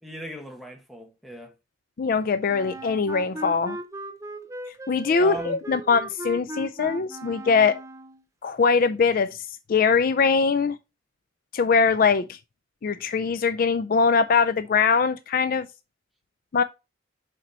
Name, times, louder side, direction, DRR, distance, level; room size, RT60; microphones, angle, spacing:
voice 1, 0.0-1.5 5.2-5.6, right 1 dB, ahead, 1.2 m, -37 dB
voice 2, 2.0-3.8 4.9-7.8 8.4-9.4 9.7-10.8 11.5-12.4 12.8-15.7 16.5-16.6, left 5 dB, 45° left, 0.4 m, -22 dB
Wind instrument woodwind instrument, 2.5-8.2, right 2 dB, 15° right, 0.6 m, -37 dB
6.7 x 4.3 x 4.3 m
head